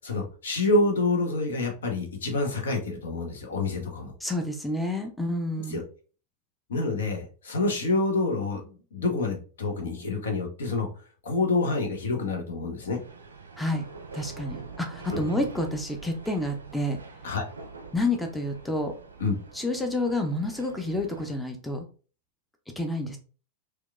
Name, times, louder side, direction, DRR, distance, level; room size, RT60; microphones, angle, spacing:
voice 1, 0.0-4.1 5.7-5.8 6.7-10.9 11.2-13.0 15.1-15.2 17.2-17.4 19.2-19.3, left 3 dB, 65° left, 4 dB, 0.8 m, -27 dB
voice 2, 4.2-5.8 13.6-13.9 14.1-17.0 17.9-18.9 19.5-21.9 22.8-23.2, left 1 dB, 5° left, 4 dB, 0.5 m, -29 dB
sound 1, 13.0-21.4, right 4 dB, 75° right, 0.5 m, -44 dB
4.4 x 2.2 x 2.4 m, 0.38 s
figure-of-eight pair, 90°, 0 cm